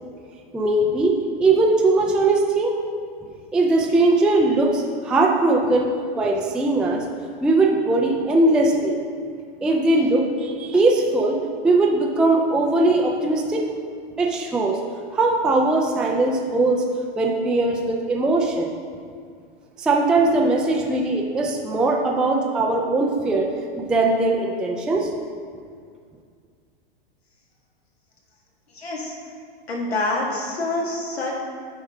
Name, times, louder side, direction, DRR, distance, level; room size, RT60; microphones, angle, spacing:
voice 1, 0.5-2.8 3.5-7.0 7.4-9.0 9.6-13.6 14.2-14.8 15.1-16.8 17.2-18.7 19.8-25.1, right 2 dB, 5° right, -1 dB, 0.3 m, -20 dB
voice 2, 28.7-29.2 29.7-31.3, left 2 dB, 90° left, -2 dB, 1.9 m, -26 dB
9.4 x 5.3 x 3.7 m, 2.1 s
hypercardioid pair, 120°, 30 cm